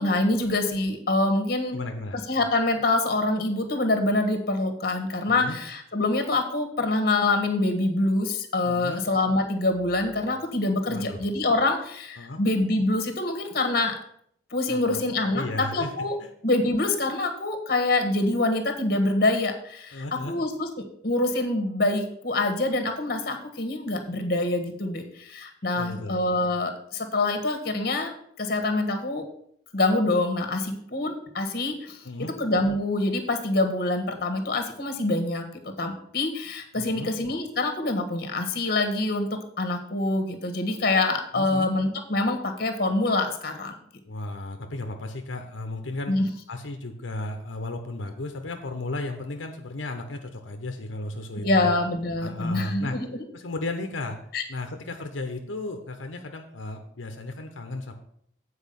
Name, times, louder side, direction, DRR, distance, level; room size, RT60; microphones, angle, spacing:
voice 1, 0.0-1.8 2.3-13.9 14.5-16.2 16.4-20.7 21.0-28.1 28.4-29.2 29.7-32.0 32.4-35.5 35.8-43.7 46.1-46.3 51.4-53.2 54.3-54.4, left 2 dB, 50° left, 5 dB, 1.4 m, -25 dB
voice 2, 1.7-2.2 5.3-5.6 8.6-9.0 10.9-11.2 12.2-12.4 14.7-15.0 15.3-15.9 16.2-16.3 19.9-20.4 25.8-26.2 32.0-32.3 36.7-37.1 41.3-41.7 44.1-46.1 46.5-51.7 52.2-53.0 53.3-54.2 54.5-57.9, left 2 dB, 90° left, 5 dB, 0.9 m, -34 dB
8.4 x 4.7 x 6.9 m, 0.66 s
head